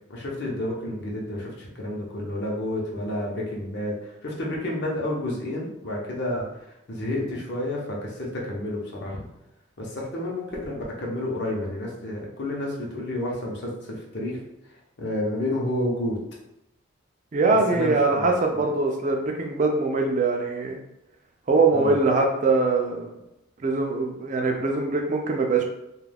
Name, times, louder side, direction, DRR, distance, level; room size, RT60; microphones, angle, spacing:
voice 1, 0.1-6.5 6.9-9.2 9.8-13.7 14.1-14.4 15.0-16.2 17.7-18.2 21.7-22.0, left 1 dB, 55° left, -3 dB, 0.7 m, -30 dB
voice 2, 17.3-20.8 21.5-23.1 23.6-25.6, right 3 dB, 35° right, 2 dB, 0.3 m, -22 dB
2.3 x 2.2 x 3.3 m, 0.88 s
head